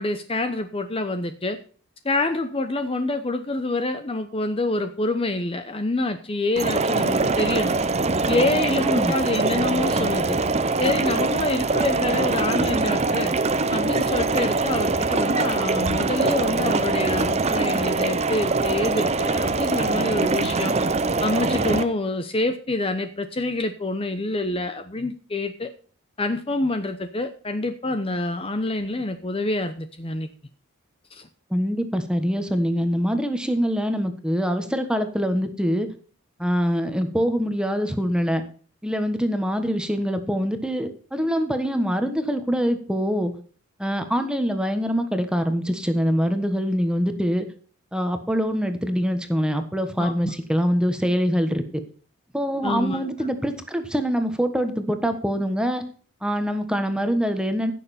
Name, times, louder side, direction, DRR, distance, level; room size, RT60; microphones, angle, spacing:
voice 1, 0.0-1.6 2.0-7.8 8.3-10.4 10.8-13.3 13.7-20.7 21.2-25.7 26.2-30.3 31.1-31.3 50.0-50.3 52.6-53.1, left 2 dB, 25° left, 8 dB, 0.8 m, -26 dB
sound 1, 6.6-21.8, right 3 dB, 30° right, 0.7 m, -23 dB
voice 2, 8.8-9.1 31.5-35.9 36.4-38.4 38.8-43.3 43.8-47.5 47.9-51.6 52.3-55.8 56.2-57.7, equal, 5° right, 7 dB, 1.2 m, -24 dB
15.5 x 6.9 x 4.3 m, 0.43 s
head